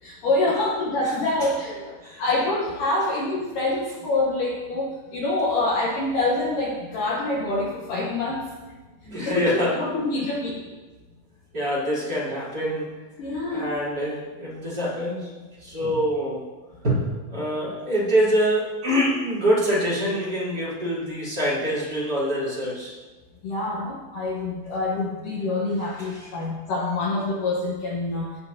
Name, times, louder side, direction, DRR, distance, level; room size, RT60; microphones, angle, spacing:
voice 1, 0.0-1.7 2.2-8.5 9.2-10.6 13.2-13.7 23.4-28.4, left 2 dB, 85° left, -2 dB, 1.9 m, -26 dB
voice 2, 9.0-9.8 11.5-12.9 13.5-15.3 15.6-16.4 16.8-22.9 26.0-26.3, equal, 25° right, -7 dB, 3.6 m, -25 dB
17.5 x 9.8 x 2.8 m, 1.2 s
omnidirectional pair, 5.5 m